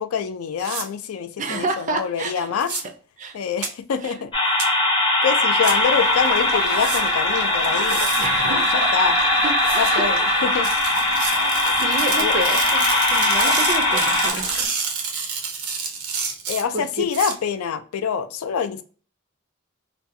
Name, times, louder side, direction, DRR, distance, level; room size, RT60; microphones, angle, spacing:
voice 1, 0.0-2.7 3.3-4.3 5.2-8.1 8.4-9.2 9.8-10.7 12.2-12.3 16.5-18.8, left 7 dB, 80° left, 0.3 m, -26 dB
sound 1, 0.6-0.8 2.6-2.8 3.6-3.7 4.6-4.7 5.6-5.7 6.7-7.0 7.6-8.3 9.6-9.9 10.6-17.3, right 5 dB, 90° right, 0.6 m, -29 dB
voice 2, 1.4-2.5 3.2-3.4 4.0-4.1 8.2-8.9 9.4-10.5 11.7-14.4 16.7-17.0, right 2 dB, 35° right, 0.4 m, -29 dB
sound 2, 4.3-14.3, left 1 dB, 20° left, 0.6 m, -20 dB
sound 3, 5.7-14.7, left 2 dB, 55° left, 0.7 m, -31 dB
2.5 x 2.2 x 2.5 m
head